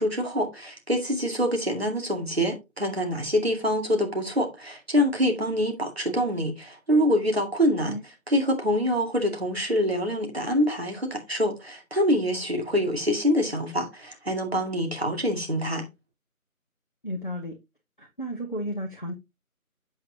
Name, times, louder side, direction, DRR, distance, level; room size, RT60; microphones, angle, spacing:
voice 1, 0.0-7.9 8.3-15.9, equal, 45° right, 2.3 m, -25 dB
voice 2, 17.0-17.6 18.0-19.1, equal, 35° left, 0.9 m, -33 dB
7.9 x 7.6 x 2.8 m
figure-of-eight pair, 175°, 43 cm